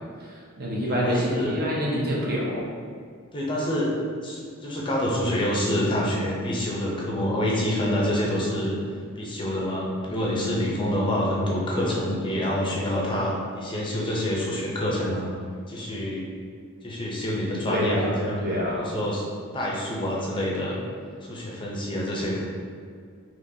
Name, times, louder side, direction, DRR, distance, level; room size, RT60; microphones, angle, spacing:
voice 1, 0.3-2.6 10.1-10.5 17.7-18.2 18.4-18.9, equal, 50° right, -4 dB, 0.8 m, -27 dB
voice 2, 0.8-1.6 3.3-3.9 4.2-8.8 9.2-15.3 15.7-16.2 16.8-18.4 18.7-19.3 19.5-20.8 21.2-22.4, left 1 dB, 25° left, -4 dB, 0.5 m, -27 dB
3.8 x 2.9 x 2.6 m, 2.1 s
head